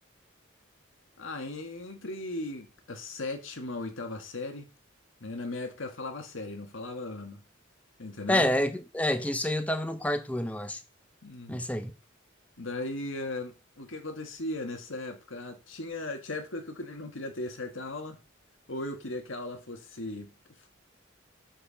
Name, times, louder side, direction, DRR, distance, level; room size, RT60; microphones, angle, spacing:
voice 1, 1.2-4.7 5.2-7.4 8.0-8.5 11.2-11.7 12.6-18.2 18.7-20.3, left 2 dB, 75° left, 1.6 m, -37 dB
voice 2, 8.3-10.8 11.5-11.9, left 1 dB, 5° left, 0.7 m, -28 dB
7.9 x 4.5 x 5.1 m
head